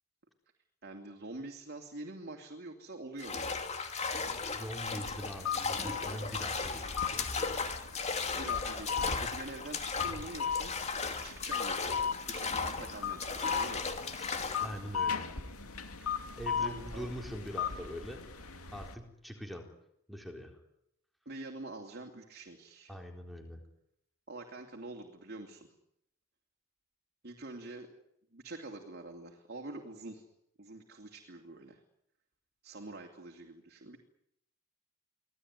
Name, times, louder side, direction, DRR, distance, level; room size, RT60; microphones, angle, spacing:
voice 1, 0.8-3.7 8.3-10.8 11.2-13.8 16.0-16.2 16.6-17.1 21.2-22.9 24.3-25.7 27.2-27.9 28.3-30.2 30.6-31.8 32.6-34.0, right 2 dB, 50° right, 2 dB, 2.9 m, -46 dB
sound 1, 3.2-14.8, left 4 dB, 30° left, 2.7 m, -36 dB
voice 2, 4.5-7.6 14.2-14.3 14.6-15.3 16.4-19.7 20.1-20.6 22.9-23.6, equal, ahead, 3 dB, 4.1 m, -43 dB
sound 2, 5.0-18.9, left 6 dB, 90° left, 2.5 m, -38 dB
25.5 x 17.5 x 9.8 m, 0.75 s
head